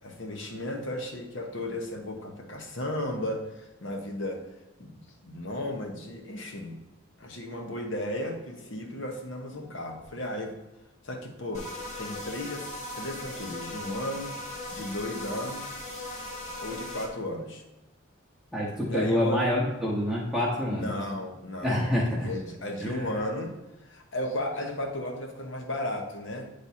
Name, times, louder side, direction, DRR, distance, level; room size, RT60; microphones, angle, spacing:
voice 1, 0.0-4.4 4.8-6.8 7.2-10.5 11.0-11.7 12.0-12.7 13.0-14.3 14.7-15.7 16.6-17.6 18.9-19.4 20.7-23.5 23.8-26.5, left 1 dB, 65° left, 2 dB, 1.1 m, -34 dB
sound 1, 11.5-17.1, left 1 dB, 35° left, 1.4 m, -38 dB
voice 2, 18.5-20.9 21.6-22.3 22.8-22.9, equal, ahead, -7 dB, 0.8 m, -27 dB
9.4 x 3.4 x 4.2 m, 0.95 s
head